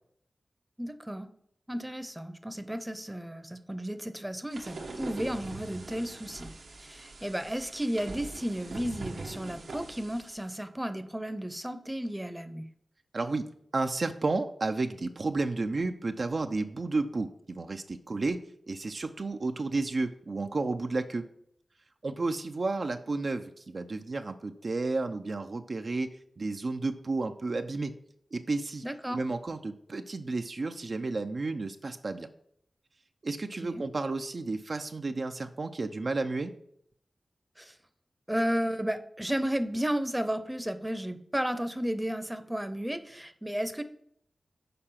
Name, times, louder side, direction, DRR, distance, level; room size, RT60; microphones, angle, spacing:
voice 1, 0.8-1.3 1.7-6.5 6.8-12.6 28.8-29.2 33.6-33.8 37.6-37.8 38.3-43.8, equal, 10° right, 10 dB, 0.7 m, -33 dB
sound 1, 4.5-10.4, right 3 dB, 85° right, 1.2 m, -42 dB
voice 2, 13.1-18.4 18.7-21.2 22.0-26.1 26.4-27.9 28.3-28.8 29.1-32.3 33.2-36.5, right 3 dB, 60° right, 6 dB, 0.5 m, -32 dB
6.8 x 4.8 x 5.7 m, 0.69 s
cardioid pair, 50°, 0 cm